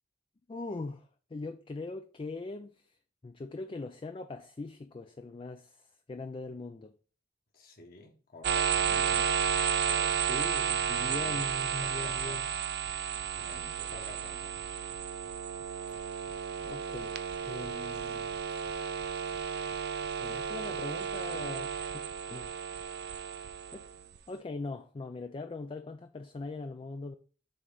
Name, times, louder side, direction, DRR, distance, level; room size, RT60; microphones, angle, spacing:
voice 1, 0.5-2.9 3.2-6.9 10.3-12.5 16.6-18.3 20.2-22.6 23.7-23.8 24.3-27.1, left 3 dB, 30° left, 0.4 m, -41 dB
voice 2, 7.5-10.3 10.9-11.5 11.8-12.4 12.8-14.7, left 2 dB, 55° left, 1.4 m, -50 dB
sound 1, 8.4-24.2, right 7 dB, 60° right, 0.5 m, -33 dB
7.6 x 3.1 x 3.9 m
head